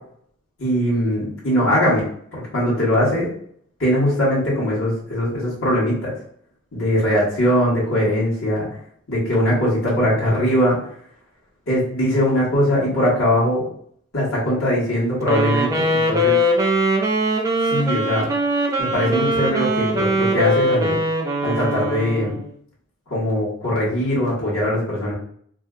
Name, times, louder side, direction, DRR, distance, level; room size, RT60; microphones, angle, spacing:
voice 1, 0.6-2.1 2.3-3.3 3.8-6.1 6.7-8.7 9.1-10.8 11.7-13.6 14.1-16.4 17.7-18.2 18.8-21.0 21.4-22.4 23.1-25.1, equal, 75° left, -8 dB, 1.3 m, -20 dB
Wind instrument woodwind instrument, 15.2-22.5, equal, 15° right, 0.4 m, -21 dB
2.6 x 2.3 x 3.6 m, 0.63 s
head